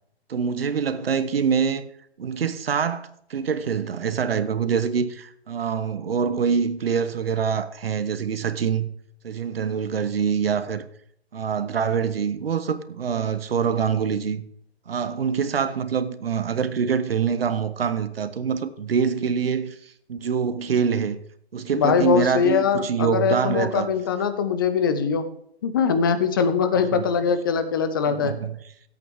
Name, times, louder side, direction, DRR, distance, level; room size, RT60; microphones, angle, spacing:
voice 1, 0.3-1.9 2.2-8.9 9.2-10.9 11.3-14.4 14.9-21.2 21.5-23.9 26.9-27.1 28.1-28.6, right 6 dB, 65° right, 0.9 m, -25 dB
voice 2, 21.7-25.3 25.6-28.4, left 6 dB, 20° left, 0.5 m, -22 dB
15.0 x 8.4 x 3.5 m
figure-of-eight pair, 135°, 32 cm